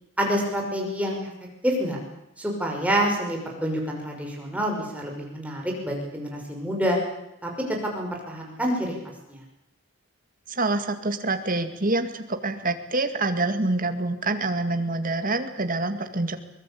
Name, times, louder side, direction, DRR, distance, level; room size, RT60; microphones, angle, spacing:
voice 1, 0.2-1.3 1.6-2.0 2.4-7.0 7.4-7.5 7.8-8.9 9.3-9.4, equal, 5° right, 0 dB, 6.0 m, -27 dB
voice 2, 10.5-16.4, right 2 dB, 40° right, 7 dB, 2.1 m, -26 dB
23.0 x 20.5 x 8.6 m, 0.84 s
head